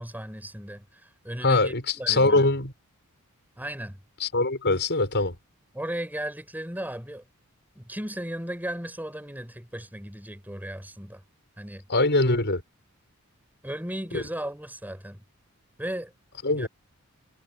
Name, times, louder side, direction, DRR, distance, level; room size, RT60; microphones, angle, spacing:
voice 1, 0.0-2.5 3.6-4.0 5.7-7.2 7.7-11.2 11.6-11.8 13.6-15.2 15.8-16.1 16.5-16.7, right 1 dB, 10° right, 6.0 m, -36 dB
voice 2, 1.4-1.8 2.1-2.7 4.2-5.3 11.9-12.6 14.1-14.2 16.4-16.7, left 2 dB, 50° left, 6.3 m, -22 dB
head